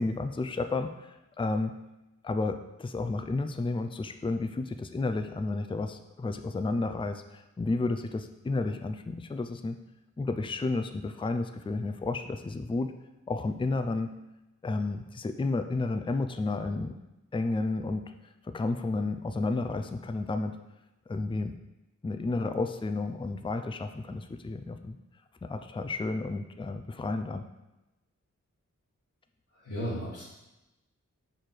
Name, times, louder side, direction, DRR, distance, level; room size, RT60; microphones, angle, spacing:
voice 1, 0.0-1.7 2.2-9.8 10.2-12.9 13.3-14.1 14.6-16.9 17.3-18.0 18.4-20.5 21.1-21.5 22.0-25.0 25.4-27.4, left 3 dB, 20° left, 8 dB, 0.4 m, -31 dB
voice 2, 29.5-30.2, equal, 85° left, -7 dB, 1.5 m, -34 dB
5.0 x 4.7 x 5.9 m, 0.98 s
wide cardioid pair, 75°, 29 cm